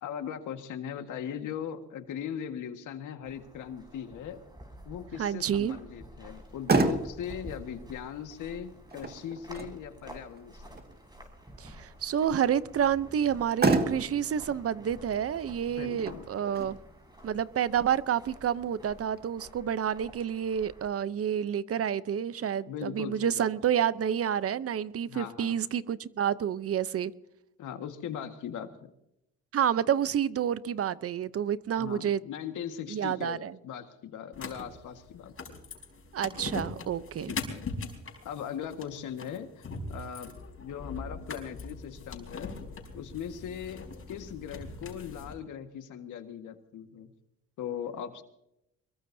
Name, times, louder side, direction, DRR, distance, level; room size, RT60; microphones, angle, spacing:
voice 1, 0.0-4.4 4.9-10.6 15.8-16.3 22.7-23.5 25.1-25.6 27.6-28.9 31.8-35.6 37.3-37.6 38.2-40.3 40.6-42.5 42.9-47.1 47.6-48.2, left 8 dB, 80° left, 1.7 m, -39 dB
sound 1, 3.2-20.9, equal, 15° right, 5.9 m, -50 dB
voice 2, 5.2-5.8 11.6-16.8 17.2-27.1 29.5-32.2 32.9-33.5 36.1-37.3, right 9 dB, 50° right, 0.7 m, -29 dB
Motor vehicle (road), 6.3-19.2, right 3 dB, 30° right, 2.0 m, -34 dB
sound 2, 34.3-45.3, left 4 dB, 45° left, 4.8 m, -41 dB
24.0 x 22.0 x 2.7 m
cardioid pair, 90°, 30 cm